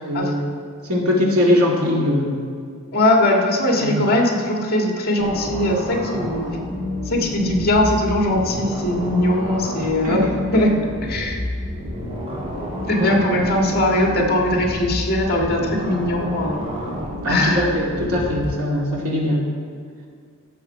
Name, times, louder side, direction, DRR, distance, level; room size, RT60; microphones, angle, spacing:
voice 1, 0.0-0.4 0.9-2.5 3.8-4.1 10.0-10.3 13.0-13.1 17.2-19.4, left 1 dB, 85° right, -2 dB, 2.3 m, -21 dB
voice 2, 2.9-6.5 7.0-10.7 11.0-11.4 12.9-16.7 17.3-17.7, left 1 dB, 45° left, 0 dB, 1.7 m, -20 dB
sound 1, 5.2-18.5, equal, 30° right, 2.7 m, -29 dB
15.5 x 7.0 x 4.7 m, 2.1 s
head